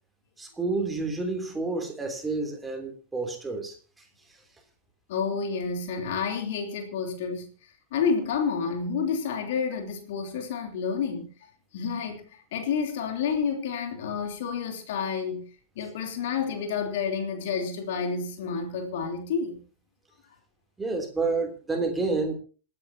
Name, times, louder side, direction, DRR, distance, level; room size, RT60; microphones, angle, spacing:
voice 1, 0.4-3.8 20.8-22.3, right 3 dB, 10° right, 3.2 m, -29 dB
voice 2, 5.1-7.5 7.9-11.3 11.7-12.2 12.5-15.5 15.7-19.6, left 6 dB, 55° left, 3.2 m, -29 dB
27.5 x 9.9 x 2.9 m
figure-of-eight pair, 90°, 0 cm